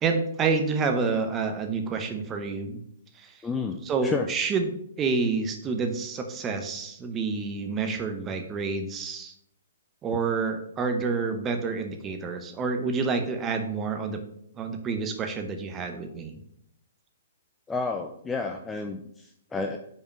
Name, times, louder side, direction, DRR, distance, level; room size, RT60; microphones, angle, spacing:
voice 1, 0.0-2.8 3.1-3.4 3.9-4.7 5.0-9.3 10.0-14.2 14.5-16.4, right 4 dB, 15° right, 6 dB, 0.8 m, -28 dB
voice 2, 3.4-4.3 17.7-19.8, left 4 dB, 10° left, 4 dB, 0.4 m, -31 dB
5.3 x 4.7 x 5.9 m, 0.71 s
hypercardioid pair, 160°, 0 cm